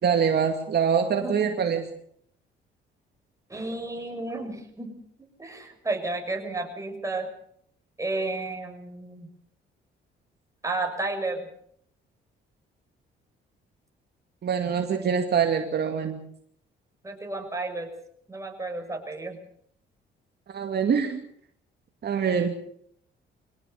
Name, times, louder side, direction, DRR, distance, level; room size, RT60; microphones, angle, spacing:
voice 1, 0.0-1.8 14.4-16.2 20.5-21.2 22.0-22.5, right 7 dB, 55° right, 4 dB, 2.4 m, -24 dB
voice 2, 1.1-1.5 3.5-7.3 8.0-9.3 10.6-11.5 17.0-17.9 18.3-19.4, right 2 dB, 15° right, 3 dB, 6.7 m, -32 dB
24.0 x 18.0 x 6.8 m, 0.65 s
cardioid pair, 90°, 20 cm